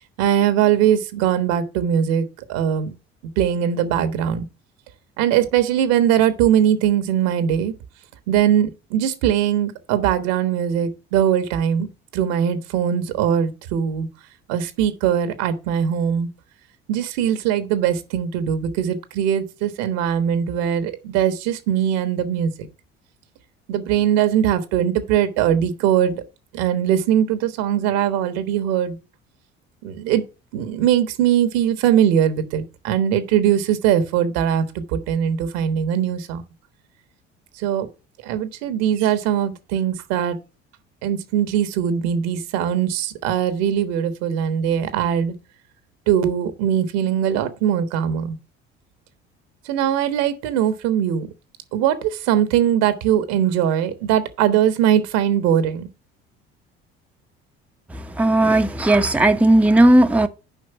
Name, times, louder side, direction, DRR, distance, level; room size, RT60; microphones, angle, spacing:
voice 1, 0.2-2.9 3.4-4.4 5.2-7.7 8.3-11.9 12.1-14.1 14.5-16.3 16.9-22.7 23.7-26.2 26.5-29.0 29.8-30.2 30.5-36.4 37.6-37.9 38.2-40.4 41.0-45.3 46.1-48.4 49.7-51.3 51.7-55.9, right 9 dB, 75° right, 1.3 m, -21 dB
voice 2, 58.2-60.3, right 1 dB, 5° right, 0.8 m, -15 dB
7.3 x 5.2 x 6.9 m
hypercardioid pair, 65°, 31 cm